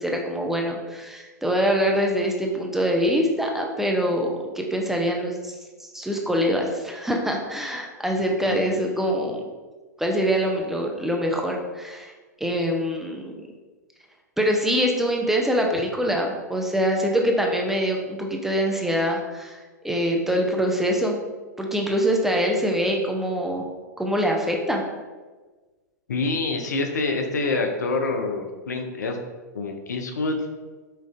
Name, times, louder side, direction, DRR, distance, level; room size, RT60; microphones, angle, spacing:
voice 1, 0.0-5.5 5.8-9.4 10.0-12.1 12.4-13.4 14.4-19.6 19.8-21.2 21.6-23.7 24.0-24.8, equal, 5° right, 0 dB, 0.4 m, -24 dB
voice 2, 8.5-8.9 26.1-29.2 29.5-30.4, left 3 dB, 70° left, 4 dB, 0.5 m, -26 dB
5.2 x 2.4 x 2.4 m, 1.3 s
figure-of-eight pair, 100°, 9 cm